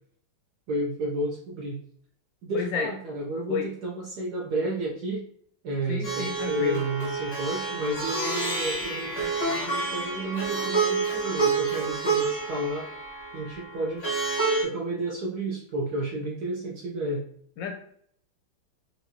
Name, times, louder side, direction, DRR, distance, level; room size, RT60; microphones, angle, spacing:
voice 1, 0.7-1.8 2.4-5.2 5.6-12.9 13.3-14.1 14.6-17.2, right 1 dB, 65° right, -3 dB, 1.0 m, -31 dB
voice 2, 2.5-2.9 3.5-3.7 5.9-6.8 17.6-17.7, left 6 dB, 75° left, 4 dB, 1.1 m, -31 dB
Plucked string instrument, 6.0-14.6, right 4 dB, 40° left, 0.4 m, -28 dB
4.7 x 2.7 x 2.8 m, 0.64 s
omnidirectional pair, 2.3 m